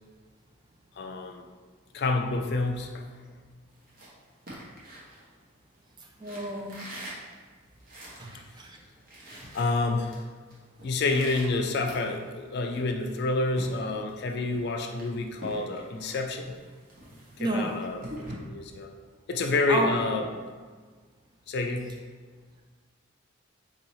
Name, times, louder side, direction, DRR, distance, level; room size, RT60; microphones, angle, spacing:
voice 1, 1.0-1.5 1.9-3.0 9.5-10.2 10.8-16.5 17.4-18.0 18.4-18.9 19.3-20.3 21.5-21.9, left 3 dB, 50° left, 4 dB, 0.3 m, -28 dB
sound 1, 3.7-5.8 6.2-8.4 8.7-8.8 9.0-10.2 10.5-12.4 12.8-14.2 14.5-18.3, right 1 dB, 45° right, 0.8 m, -45 dB
voice 2, 6.2-6.8 8.2-8.8 17.4-17.8 19.7-19.9, right 2 dB, 20° right, 1 dB, 0.3 m, -30 dB
4.1 x 2.7 x 3.0 m, 1.5 s
head